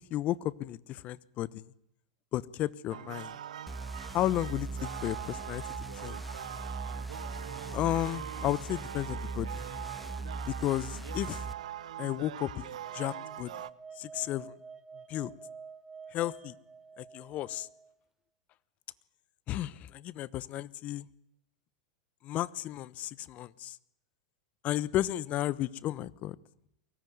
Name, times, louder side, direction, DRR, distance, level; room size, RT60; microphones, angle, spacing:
voice 1, 0.1-1.7 2.3-3.3 4.1-5.6 6.0-6.2 7.7-9.6 10.5-11.4 12.0-13.5 14.0-14.5 15.1-15.3 16.1-16.5 17.0-17.7 19.5-21.1 22.2-23.8 24.6-26.3, left 14 dB, 40° left, 20 dB, 1.0 m, -33 dB
sound 1, 2.9-13.7, right 11 dB, 75° right, 0.9 m, -42 dB
sound 2, 3.7-11.5, right 2 dB, ahead, 1.3 m, -40 dB
sound 3, 12.8-17.9, right 5 dB, 15° right, 1.1 m, -49 dB
23.0 x 18.5 x 9.5 m, 0.76 s
hypercardioid pair, 100°, 4 cm